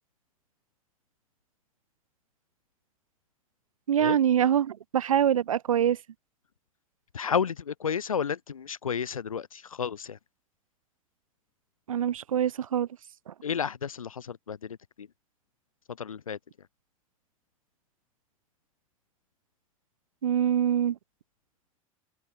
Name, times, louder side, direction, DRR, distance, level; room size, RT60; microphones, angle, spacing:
voice 1, 3.9-6.0 11.9-12.9 13.3-13.4 20.2-21.0, right 9 dB, 80° right, 0.8 m, -24 dB
voice 2, 7.1-10.2 13.4-15.1 16.0-16.4, left 7 dB, 85° left, 2.2 m, -32 dB
figure-of-eight pair, 75°, 17 cm